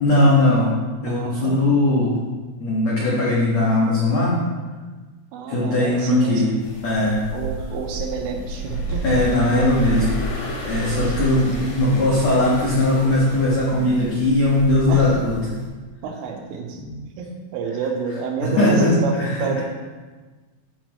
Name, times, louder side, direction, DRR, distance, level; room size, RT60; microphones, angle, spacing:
voice 1, 0.0-0.7 1.0-2.2 2.6-4.4 5.5-6.5 6.8-7.2 9.0-10.0 10.6-15.4 16.8-16.9 18.6-19.3 19.6-19.7, left 2 dB, 80° left, -7 dB, 1.5 m, -19 dB
voice 2, 1.1-1.6 5.3-6.5 7.3-9.1 9.5-9.9 10.9-11.5 14.9-15.2 16.0-16.8 17.2-19.6, right 5 dB, 85° right, 3 dB, 3.5 m, -29 dB
sound 1, 6.6-15.6, right 2 dB, 60° left, 4.5 m, -30 dB
14.5 x 5.3 x 3.0 m, 1.3 s
omnidirectional pair, 5.6 m